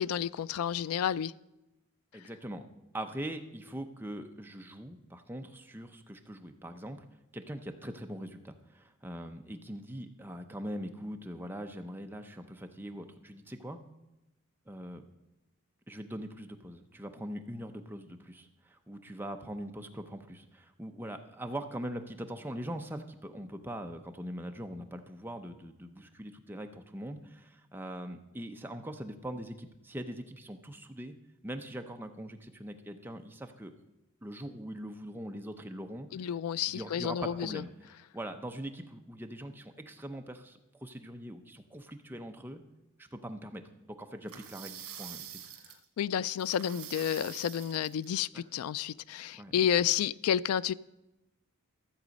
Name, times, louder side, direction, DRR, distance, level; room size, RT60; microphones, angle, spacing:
voice 1, 0.0-1.3 36.1-37.6 46.0-50.7, left 9 dB, 80° left, 18 dB, 0.3 m, -30 dB
voice 2, 2.1-2.7 2.9-7.1 7.3-13.8 14.7-15.0 15.9-31.1 31.4-33.7 34.2-36.3 36.7-37.7 38.1-42.6 43.0-43.6 43.9-45.4 48.3-48.4 49.4-49.5, right 1 dB, 10° right, 5 dB, 0.6 m, -42 dB
sound 1, 44.3-45.8 46.4-48.1, right 10 dB, 75° right, 1.6 m, -46 dB
14.0 x 7.4 x 5.2 m, 0.95 s
head